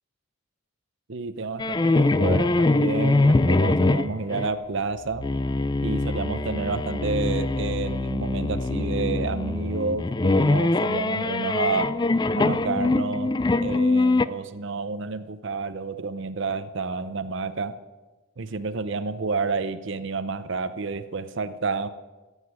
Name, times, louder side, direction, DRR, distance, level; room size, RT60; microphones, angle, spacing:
voice 1, 1.1-5.3 5.8-12.0 12.4-13.3 13.6-17.8 18.4-21.9, right 4 dB, 60° right, 12 dB, 0.7 m, -29 dB
sound 1, 1.6-4.5 5.2-14.3, left 2 dB, 20° left, 0.4 m, -23 dB
15.0 x 8.2 x 9.6 m, 1.2 s
head